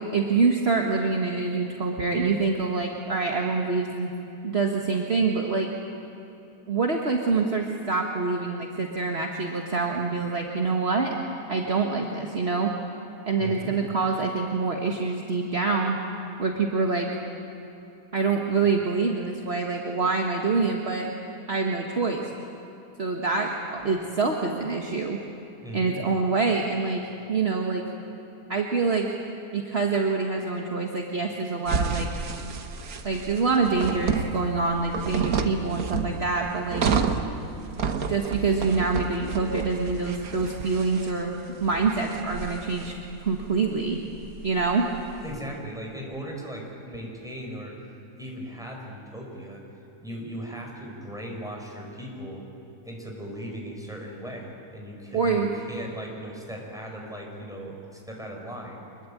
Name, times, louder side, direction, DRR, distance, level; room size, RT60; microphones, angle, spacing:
voice 1, 0.1-4.1 4.4-5.7 6.7-11.2 11.5-12.7 13.3-16.0 16.4-17.1 18.1-21.1 21.5-22.2 23.0-25.2 25.7-27.0 27.3-27.8 28.5-29.1 29.5-32.1 33.0-36.8 38.1-41.4 41.6-44.0 44.4-44.9 55.1-55.5, right 4 dB, 40° right, 1 dB, 1.8 m, -25 dB
voice 2, 13.4-13.7 25.6-26.0 45.2-47.8 48.2-49.6 50.0-52.4 52.8-58.8, equal, ahead, -1 dB, 5.2 m, -38 dB
sound 1, 31.7-45.4, right 5 dB, 65° right, 1.7 m, -31 dB
25.0 x 22.0 x 8.6 m, 2.9 s
omnidirectional pair, 1.7 m